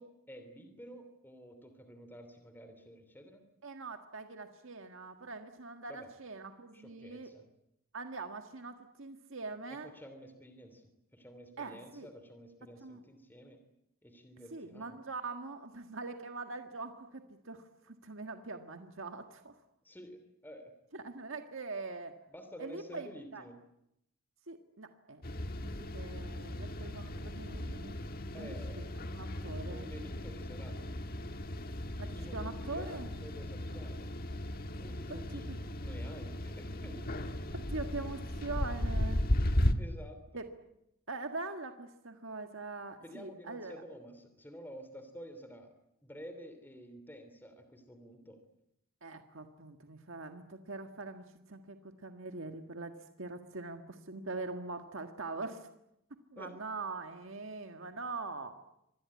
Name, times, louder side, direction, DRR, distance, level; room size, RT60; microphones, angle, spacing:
voice 1, 0.0-3.4 5.9-6.1 6.7-7.4 9.7-13.6 14.0-15.0 19.8-20.7 22.3-23.6 28.3-28.9 29.7-30.8 32.1-34.1 34.8-35.5 35.8-37.3 39.8-40.4 43.0-45.7 46.0-48.4 56.4-56.5, equal, 10° left, 8 dB, 2.9 m, -50 dB
voice 2, 3.6-7.3 7.9-9.9 11.6-12.1 12.8-13.0 14.5-19.5 20.9-22.1 22.6-23.4 24.5-25.2 25.6-28.0 28.3-28.6 29.1-29.9 32.0-33.1 35.3-35.6 37.5-39.3 40.3-40.4 41.1-43.7 49.0-55.7 56.3-58.6, right 3 dB, 65° right, 6 dB, 1.7 m, -43 dB
sound 1, 25.2-39.7, left 1 dB, 45° left, 1.5 m, -36 dB
26.0 x 20.0 x 9.6 m, 0.81 s
head